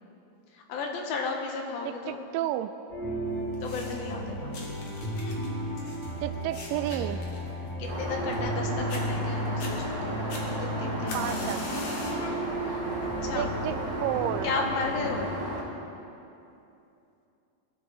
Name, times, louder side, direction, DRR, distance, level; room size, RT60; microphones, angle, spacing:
voice 1, 0.5-2.2 3.6-4.6 5.2-5.4 7.8-10.3 10.5-11.6 12.0-12.9 13.2-13.6 14.4-15.3, left 4 dB, 75° left, 1 dB, 3.2 m, -34 dB
voice 2, 2.1-2.7 6.2-7.2 11.1-11.6 13.4-14.5, right 12 dB, 85° right, 11 dB, 1.9 m, -31 dB
sound 1, 2.9-15.2, right 1 dB, 25° left, 3.0 m, -34 dB
sound 2, 3.5-4.1 4.5-8.6 8.9-9.0 9.5-9.7 10.3-12.3 12.7-13.1 13.9-14.0, left 3 dB, 55° left, 3.0 m, -42 dB
Aircraft, 7.9-15.6, equal, 25° right, 3.2 m, -34 dB
22.0 x 13.0 x 4.1 m, 2.7 s
omnidirectional pair, 4.4 m